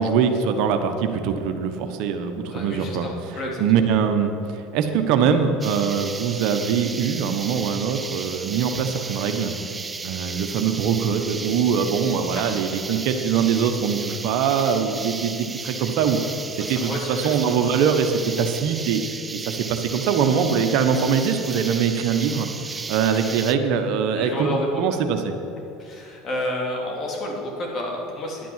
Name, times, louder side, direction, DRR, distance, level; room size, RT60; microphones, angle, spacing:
voice 1, 0.0-9.5 10.0-16.2 16.5-22.5 22.9-25.4, right 7 dB, 65° right, 6 dB, 1.2 m, -23 dB
voice 2, 2.5-3.8 16.6-17.3 24.2-24.8 25.8-28.5, left 1 dB, 40° left, -1 dB, 3.4 m, -30 dB
sound 1, 5.6-23.5, right 4 dB, 20° right, 0.7 m, -34 dB
11.0 x 9.2 x 7.5 m, 2.8 s
supercardioid pair, 100°, 0 cm